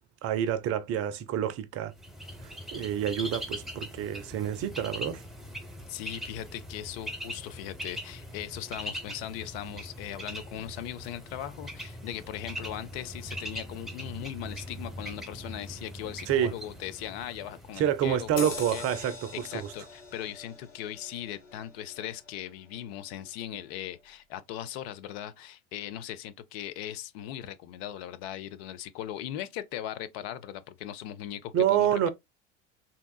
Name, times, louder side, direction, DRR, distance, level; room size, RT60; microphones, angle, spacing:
voice 1, 0.2-1.9 2.4-5.2 16.3-16.5 17.8-19.7 31.5-32.1, right 10 dB, 40° right, 0.6 m, -28 dB
Bird, 2.0-19.7, equal, ahead, 0.9 m, -41 dB
voice 2, 5.9-19.1 19.4-32.1, left 11 dB, 55° left, 0.5 m, -39 dB
sound 1, 18.4-23.3 23.8-23.9, left 4 dB, 90° left, 0.7 m, -43 dB
3.5 x 2.8 x 2.2 m
figure-of-eight pair, 75°, 37 cm